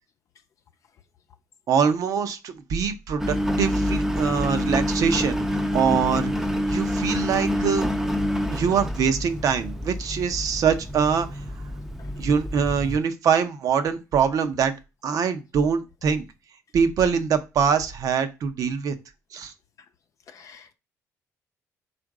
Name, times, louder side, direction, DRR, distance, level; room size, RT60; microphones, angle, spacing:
voice 1, 1.7-6.3 6.7-7.9 8.5-11.3 12.2-14.7 15.0-16.2 16.7-18.9 19.3-19.5, right 6 dB, 70° right, 0.7 m, -23 dB
Engine, 3.2-13.0, equal, 5° right, 0.6 m, -27 dB
voice 2, 20.3-20.7, left 6 dB, 60° left, 0.6 m, -48 dB
4.4 x 2.5 x 4.7 m
cardioid pair, 85°, 6 cm